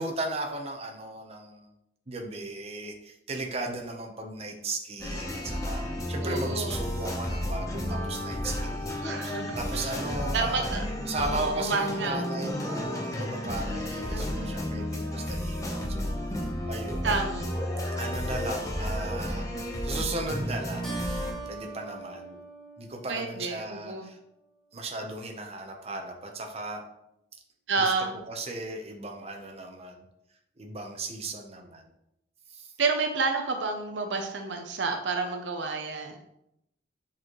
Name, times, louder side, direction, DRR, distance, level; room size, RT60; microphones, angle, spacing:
voice 1, 0.0-1.7 2.1-5.8 6.1-10.7 11.0-16.1 16.7-17.1 18.0-21.0 21.5-22.4 22.8-24.2 24.7-26.8 27.8-27.9 28.3-30.0 30.6-31.9 32.5-32.7, right 2 dB, 35° right, 2 dB, 0.8 m, -36 dB
sound 1, 5.0-21.3, left 1 dB, 20° left, 1.0 m, -32 dB
voice 2, 6.2-6.8 9.0-9.9 10.3-10.8 11.1-12.2 14.1-14.5 17.0-17.5 23.1-24.1 27.7-28.1 32.8-36.2, right 4 dB, 70° right, 4 dB, 0.6 m, -30 dB
Keyboard (musical), 20.8-23.7, right 3 dB, ahead, 1.3 m, -42 dB
7.6 x 4.2 x 3.1 m, 0.83 s
head